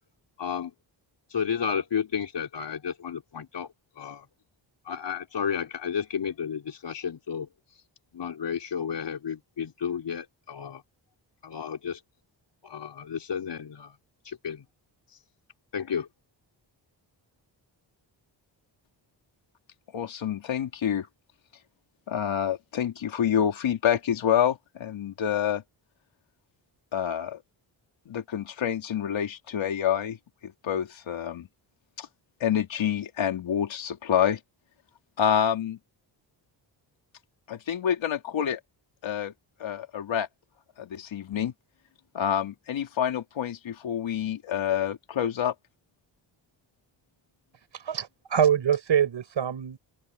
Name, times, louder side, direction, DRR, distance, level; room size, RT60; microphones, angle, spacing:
voice 1, 0.4-0.7 1.3-4.3 4.8-7.8 8.1-10.8 11.4-12.0 12.6-14.0 14.2-14.6 15.1-15.2 15.7-16.1, left 7 dB, 65° left, 4.7 m, -32 dB
voice 2, 19.9-21.1 22.1-25.6 26.9-27.4 28.1-30.2 30.4-31.5 32.0-32.1 32.4-34.4 35.2-35.8 37.5-38.6 39.0-39.3 39.6-40.3 40.8-41.5 42.1-45.5, left 9 dB, 80° left, 3.0 m, -27 dB
voice 3, 47.7-49.8, right 9 dB, 70° right, 5.8 m, -24 dB
open air
cardioid pair, 80°, 45 cm